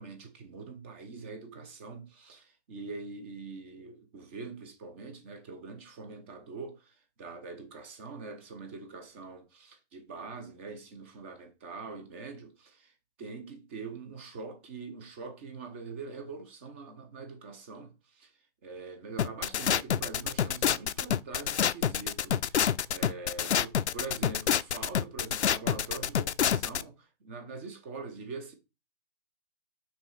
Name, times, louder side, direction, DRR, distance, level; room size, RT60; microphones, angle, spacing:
voice 1, 0.0-12.9 13.2-18.3 18.6-28.5, right 4 dB, 10° right, 0.5 m, -43 dB
sound 1, 19.2-26.8, left 9 dB, 70° left, 0.5 m, -27 dB
6.1 x 3.6 x 5.5 m
figure-of-eight pair, 140°, 35 cm